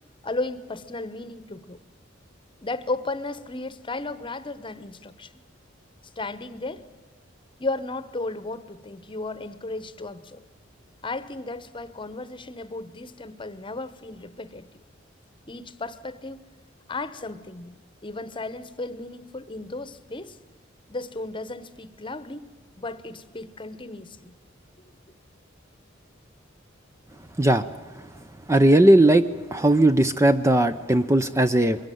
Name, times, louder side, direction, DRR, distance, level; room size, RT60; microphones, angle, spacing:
voice 1, 0.2-1.8 2.6-5.3 6.2-6.8 7.6-10.4 11.0-14.8 15.5-16.4 16.9-20.4 20.9-22.5 22.8-24.3, left 2 dB, 25° left, 14 dB, 1.0 m, -34 dB
voice 2, 28.5-29.2 29.5-31.8, right 1 dB, 15° right, 10 dB, 0.6 m, -18 dB
22.5 x 17.0 x 9.3 m, 1.4 s
head